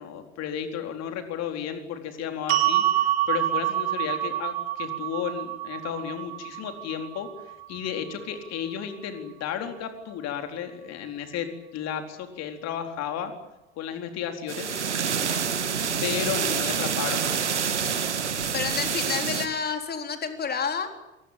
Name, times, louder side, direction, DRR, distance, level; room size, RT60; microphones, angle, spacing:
voice 1, 0.0-7.3 7.7-13.3 13.8-14.7 16.0-17.3, left 8 dB, 50° left, 6 dB, 4.2 m, -33 dB
sound 1, 2.5-8.7, right 13 dB, 65° right, 3.5 m, -28 dB
sound 2, 14.5-19.5, right 7 dB, 85° right, 2.1 m, -27 dB
voice 2, 18.5-20.9, left 6 dB, 30° left, 6 dB, 3.9 m, -29 dB
28.0 x 19.0 x 8.9 m, 0.99 s
figure-of-eight pair, 70°, 34 cm